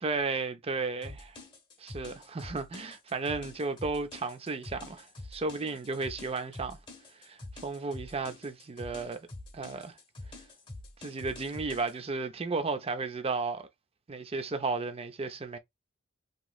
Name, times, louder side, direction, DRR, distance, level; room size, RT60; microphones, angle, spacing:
voice 1, 0.0-1.4 1.8-6.8 7.2-9.3 9.5-9.9 11.0-13.7 14.1-15.6, right 3 dB, 30° right, 0.5 m, -34 dB
sound 1, 1.0-11.9, left 2 dB, 25° left, 0.9 m, -46 dB
3.0 x 2.9 x 2.3 m
head